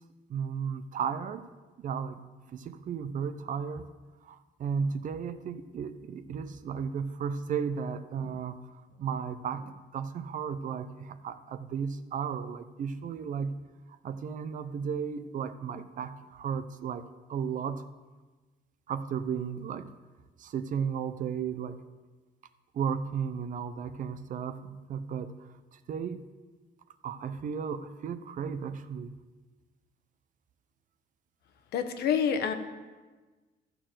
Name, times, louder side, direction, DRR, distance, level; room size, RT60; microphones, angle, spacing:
voice 1, 0.3-1.5 1.8-2.2 2.5-3.9 4.2-8.6 9.0-13.5 13.9-17.8 18.9-19.9 20.4-21.8 22.7-25.3 25.7-26.3 27.0-29.1, right 7 dB, 50° right, 0.7 m, -34 dB
voice 2, 31.7-32.5, left 7 dB, 70° left, 1.1 m, -27 dB
13.5 x 4.5 x 7.6 m
cardioid pair, 110°, 17 cm